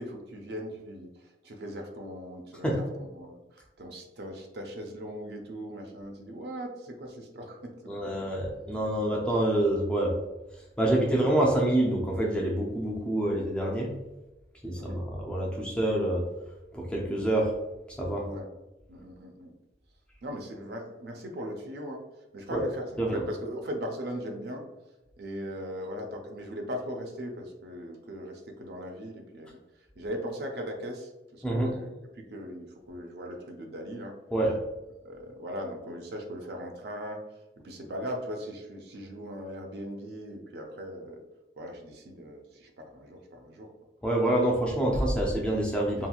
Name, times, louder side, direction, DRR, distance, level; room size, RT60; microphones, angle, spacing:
voice 1, 0.0-7.9 8.9-9.0 14.8-15.0 18.2-18.5 18.9-19.5 20.2-22.0 22.3-24.7 25.2-34.2 35.0-37.2 37.6-41.2 41.6-43.7 46.0-46.1, equal, 60° right, 3 dB, 0.4 m, -39 dB
voice 2, 7.9-10.1 10.8-13.9 14.6-16.2 16.7-17.5 18.0-18.3 22.5-22.6 23.0-23.2 31.4-31.8 34.3-34.5 44.0-46.1, right 1 dB, 5° left, -2 dB, 0.4 m, -26 dB
2.9 x 2.6 x 2.3 m, 1.0 s
head